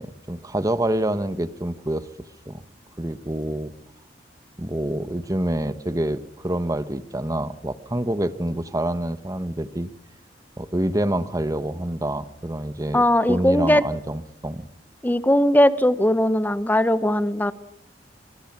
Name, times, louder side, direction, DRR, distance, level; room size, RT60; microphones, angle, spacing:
voice 1, 0.0-2.6 3.0-3.7 4.6-9.9 10.6-13.0 13.3-14.7, right 1 dB, 20° right, 12 dB, 1.1 m, -27 dB
voice 2, 12.9-13.8 15.0-17.5, left 1 dB, 10° left, 13 dB, 1.0 m, -19 dB
25.0 x 23.0 x 6.0 m, 0.77 s
head